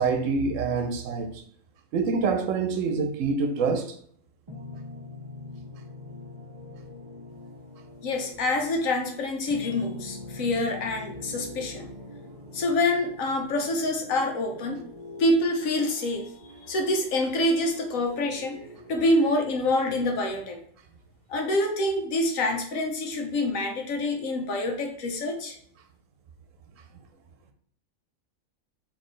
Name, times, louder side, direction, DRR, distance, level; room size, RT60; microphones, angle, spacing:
voice 1, 0.0-1.4 1.9-4.0, right 4 dB, 75° right, 1.0 m, -26 dB
sound 1, 4.5-20.1, left 2 dB, 30° right, 0.4 m, -44 dB
voice 2, 8.0-11.9 12.5-14.8 15.2-18.6 18.9-20.6 21.3-25.6, left 1 dB, 80° left, 1.3 m, -26 dB
4.3 x 3.1 x 3.2 m
omnidirectional pair, 1.4 m